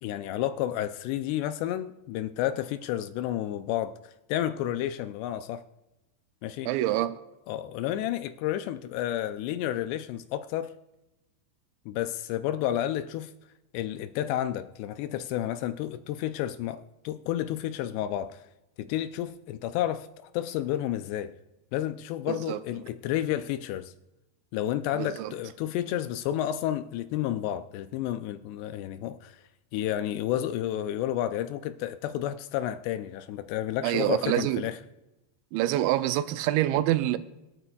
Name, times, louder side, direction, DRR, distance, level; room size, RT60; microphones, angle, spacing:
voice 1, 0.0-5.6 6.4-6.7 7.5-10.7 11.9-13.3 13.7-18.4 18.8-20.1 20.3-21.3 21.7-23.9 24.5-29.4 29.7-34.8, left 12 dB, 80° left, 2.5 m, -31 dB
voice 2, 6.7-7.2 22.3-22.6 24.9-25.3 33.8-34.6 35.5-37.2, right 14 dB, 85° right, 2.8 m, -26 dB
26.0 x 8.7 x 2.3 m
omnidirectional pair, 5.1 m